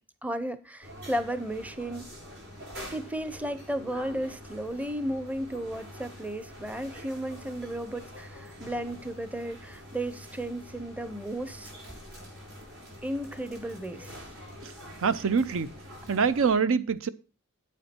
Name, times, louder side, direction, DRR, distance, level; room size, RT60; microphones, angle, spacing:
voice 1, 0.2-2.1 2.9-11.7 13.0-14.2, right 1 dB, 5° right, 0.7 m, -34 dB
sound 1, 0.8-16.6, equal, 90° right, 6.4 m, -46 dB
voice 2, 15.0-15.7 16.1-17.1, right 5 dB, 65° right, 0.6 m, -25 dB
8.9 x 8.3 x 4.3 m
head